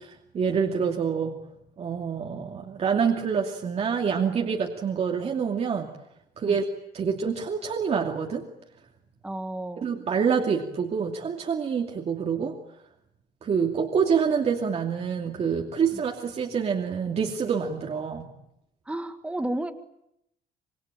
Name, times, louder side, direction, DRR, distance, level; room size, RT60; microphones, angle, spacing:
voice 1, 0.0-1.4 1.8-5.9 6.4-6.6 6.9-8.4 9.8-12.5 13.4-18.3, right 6 dB, 35° right, 1 dB, 2.7 m, -26 dB
voice 2, 9.2-9.9 15.9-16.0 18.9-19.7, right 1 dB, 5° right, 8 dB, 1.8 m, -32 dB
26.5 x 24.5 x 8.9 m, 0.78 s
cardioid pair, 170°, 17 cm